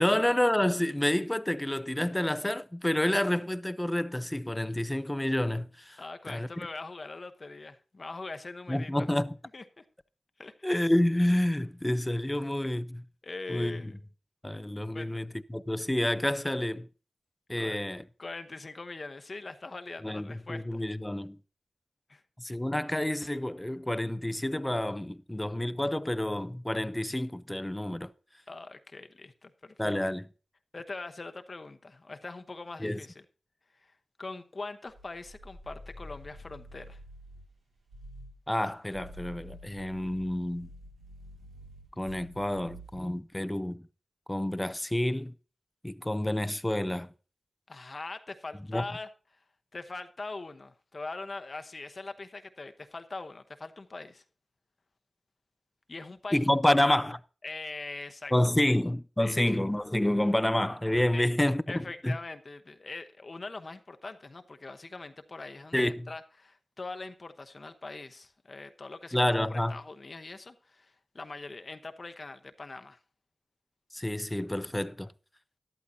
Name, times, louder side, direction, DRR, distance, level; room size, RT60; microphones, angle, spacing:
voice 1, 0.0-6.0 6.3-6.5 8.7-9.3 10.6-13.0 13.5-13.8 14.4-16.9 17.5-18.0 20.0-21.4 22.4-28.1 29.8-30.3 32.8-33.0 38.5-40.7 42.0-43.8 44.3-45.3 45.8-47.1 48.7-48.8 56.3-57.1 58.3-62.1 65.7-66.0 69.1-69.8 73.9-75.1, left 1 dB, 15° left, 0.6 m, -28 dB
voice 2, 6.0-9.1 9.5-9.8 10.4-10.5 13.2-13.9 14.9-15.2 17.6-20.8 22.1-22.2 28.5-29.9 30.7-33.2 33.8-33.9 34.2-37.0 47.7-49.4 49.7-54.2 55.9-56.8 57.4-58.3 58.6-58.7 59.2-59.4 61.1-61.3 61.7-73.0, left 3 dB, 55° left, 0.9 m, -42 dB
sound 1, 34.9-37.5 37.9-38.4 38.8-43.1, equal, 90° right, 2.1 m, -49 dB
13.0 x 11.0 x 2.7 m
cardioid pair, 40°, 0 cm